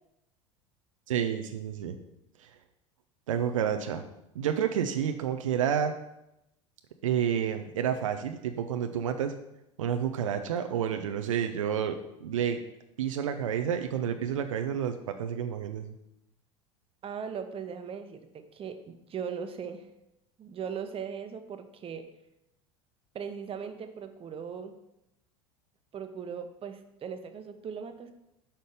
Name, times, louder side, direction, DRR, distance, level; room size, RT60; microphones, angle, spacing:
voice 1, 1.1-2.0 3.3-4.0 4.4-6.0 7.0-9.3 9.8-12.0 12.2-12.6 13.0-15.9, right 8 dB, 80° right, 6 dB, 0.6 m, -29 dB
voice 2, 17.0-19.9 20.4-22.1 23.1-24.8 25.9-28.1, right 7 dB, 35° right, 8 dB, 0.9 m, -39 dB
5.8 x 5.2 x 6.5 m, 0.86 s
hypercardioid pair, 75°, 17 cm